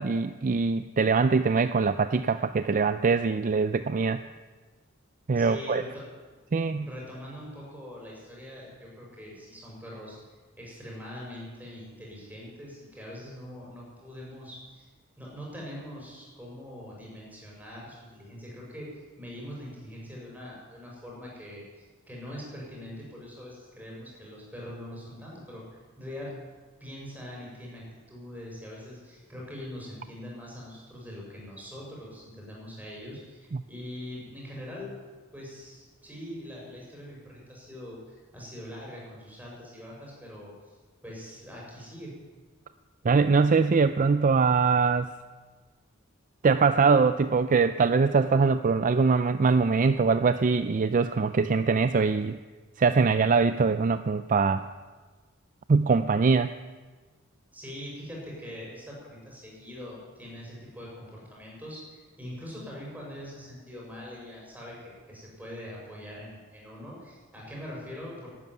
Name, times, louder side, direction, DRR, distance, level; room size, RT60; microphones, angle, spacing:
voice 1, 0.0-4.2 5.3-5.8 6.5-6.9 43.0-45.1 46.4-52.4 52.8-54.7 55.7-56.5, right 4 dB, 40° right, 11 dB, 0.4 m, -23 dB
voice 2, 5.3-6.0 6.8-14.8 15.2-25.6 26.0-26.3 26.8-34.9 35.3-40.7 41.0-42.1 57.5-68.3, equal, 10° right, -4 dB, 6.2 m, -43 dB
12.5 x 11.5 x 9.4 m, 1.4 s
head